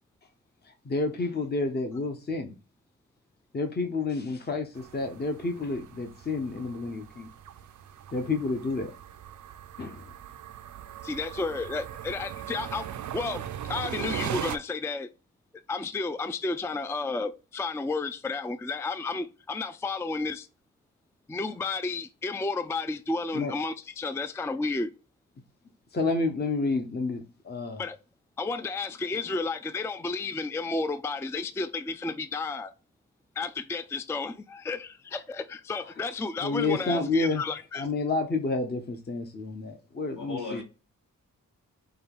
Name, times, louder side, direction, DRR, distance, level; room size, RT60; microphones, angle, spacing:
voice 1, 0.6-2.5 3.5-7.3 8.1-8.9 9.8-10.0 23.3-23.5 25.9-27.8 36.4-37.4 37.7-40.6, left 3 dB, 30° left, 0.8 m, -30 dB
sound 1, 4.8-14.6, right 10 dB, 65° right, 0.5 m, -39 dB
voice 2, 11.0-12.9 13.1-13.4 13.7-15.1 15.7-20.5 21.3-24.9 27.8-28.0 28.4-32.7 33.4-37.9, left 3 dB, 10° left, 0.3 m, -32 dB
voice 3, 40.2-40.6, left 4 dB, 70° left, 2.6 m, -38 dB
5.6 x 2.3 x 3.5 m
cardioid pair, 65°, 32 cm